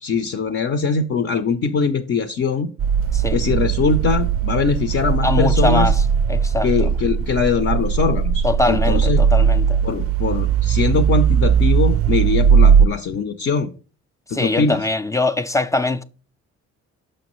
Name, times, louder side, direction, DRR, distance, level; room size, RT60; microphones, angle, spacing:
voice 1, 0.0-2.7 3.3-5.9 6.6-9.3 9.8-13.7 14.3-14.8, left 5 dB, 50° left, 0.6 m, -21 dB
sound 1, 2.8-12.9, right 7 dB, 50° right, 0.4 m, -18 dB
voice 2, 5.2-6.0 6.3-6.9 8.4-9.8 14.3-16.0, left 2 dB, 10° left, 0.4 m, -22 dB
6.3 x 5.7 x 3.0 m
cardioid pair, 90°, 30 cm